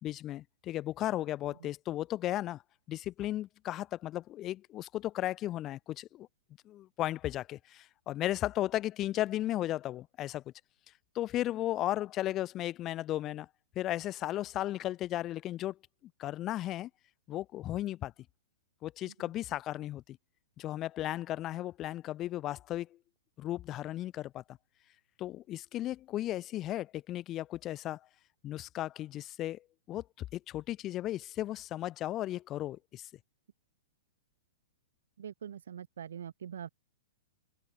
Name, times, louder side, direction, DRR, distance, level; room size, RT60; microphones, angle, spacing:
voice 1, 0.0-2.6 2.9-6.3 6.6-10.4 11.1-13.5 13.7-15.8 16.2-16.9 17.3-18.1 18.8-20.2 20.6-22.9 23.4-24.4 25.2-28.0 28.4-29.6 29.9-30.0 30.3-33.1, left 14 dB, 25° left, 1.3 m, -35 dB
voice 2, 35.2-36.7, right 9 dB, 80° right, 5.3 m, -44 dB
hypercardioid pair, 145°, 0 cm